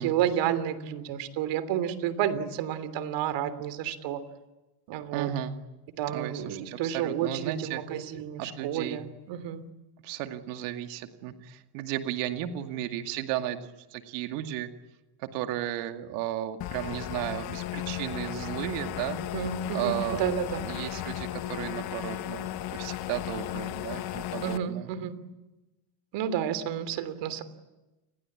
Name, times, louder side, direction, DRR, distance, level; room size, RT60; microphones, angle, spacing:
voice 1, 0.0-4.2 4.9-5.3 6.0-9.6 19.3-20.7 24.4-25.1 26.1-27.4, right 9 dB, 60° right, 13 dB, 3.2 m, -31 dB
voice 2, 5.1-5.6 6.1-7.8 8.4-9.0 10.0-14.7 15.2-19.2 19.7-20.2 20.6-24.9, right 12 dB, 80° right, 6 dB, 2.4 m, -34 dB
sound 1, 16.6-24.6, left 13 dB, 45° left, 1.4 m, -35 dB
29.0 x 21.5 x 8.7 m, 1.1 s
cardioid pair, 130°, 48 cm